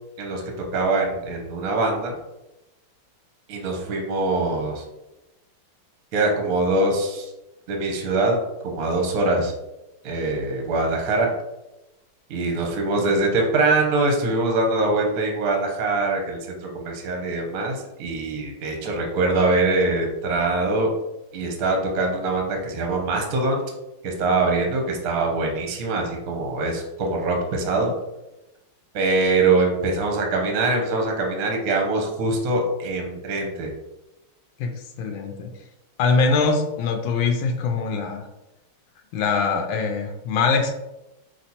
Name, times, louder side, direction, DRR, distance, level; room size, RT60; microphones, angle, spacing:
voice 1, 0.7-2.2 3.5-4.8 6.1-7.3 7.7-9.5 10.0-11.3 12.3-20.9 21.3-23.6 24.0-27.9 28.9-33.7, right 2 dB, 60° right, 2 dB, 1.0 m, -23 dB
voice 2, 35.0-35.5 36.0-38.3 39.1-40.7, left 4 dB, 75° left, 3 dB, 1.2 m, -22 dB
5.0 x 3.1 x 2.8 m, 0.97 s
omnidirectional pair, 2.4 m